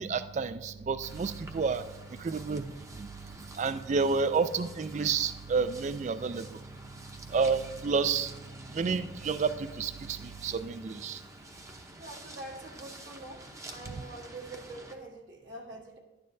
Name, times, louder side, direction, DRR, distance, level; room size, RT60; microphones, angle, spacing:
voice 1, 0.0-1.8 2.2-2.6 3.0-3.1 3.6-6.5 7.3-8.3 8.7-11.2, right 5 dB, 40° right, 12 dB, 0.3 m, -30 dB
sound 1, 1.0-14.9, right 1 dB, 15° right, 0.7 m, -49 dB
voice 2, 12.0-16.0, right 2 dB, 75° right, 1 dB, 1.5 m, -45 dB
12.0 x 9.6 x 2.6 m, 1.1 s
head